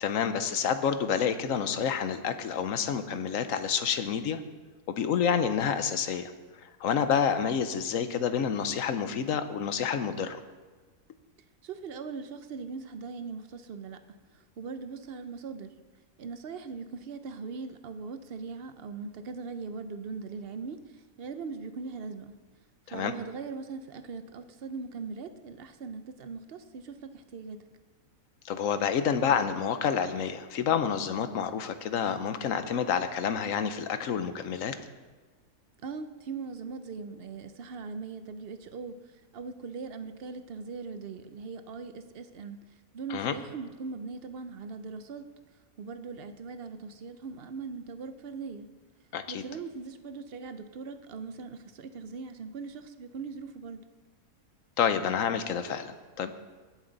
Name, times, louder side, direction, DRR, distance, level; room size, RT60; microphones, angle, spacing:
voice 1, 0.0-4.4 4.9-6.3 6.6-10.4 22.9-23.1 28.4-34.7 43.1-43.3 49.1-49.4 54.8-56.3, left 7 dB, 70° left, 10 dB, 1.2 m, -28 dB
voice 2, 11.6-15.7 16.2-22.4 22.9-27.6 35.8-38.9 39.3-42.6 42.9-45.3 45.8-48.7 49.3-53.8, right 5 dB, 50° right, 9 dB, 0.8 m, -40 dB
19.0 x 7.4 x 4.0 m, 1.4 s
omnidirectional pair, 1.5 m